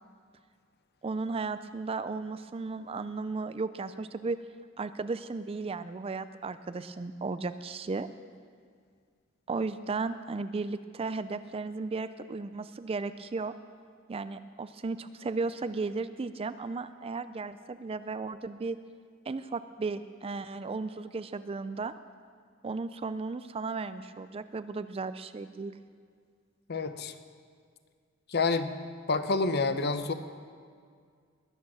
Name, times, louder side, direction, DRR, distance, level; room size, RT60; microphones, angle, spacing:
voice 1, 1.0-4.4 4.8-8.1 9.5-13.5 14.1-18.8 19.3-21.9 22.6-25.7, right 4 dB, 25° right, 12 dB, 0.4 m, -35 dB
voice 2, 26.7-27.1 28.3-28.7 29.1-30.1, left 3 dB, 50° left, 10 dB, 0.8 m, -28 dB
20.5 x 8.7 x 6.2 m, 2.1 s
head